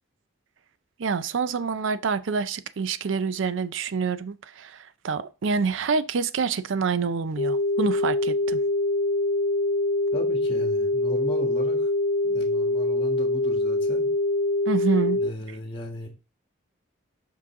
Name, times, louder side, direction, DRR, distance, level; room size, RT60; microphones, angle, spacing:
voice 1, 1.0-8.6 14.7-15.2, right 5 dB, 65° right, 0.4 m, -27 dB
sound 1, 7.4-15.3, left 2 dB, 50° left, 0.3 m, -24 dB
voice 2, 10.1-11.9 12.3-14.1 15.2-16.1, left 1 dB, 25° left, 1.4 m, -36 dB
5.5 x 5.0 x 3.6 m
head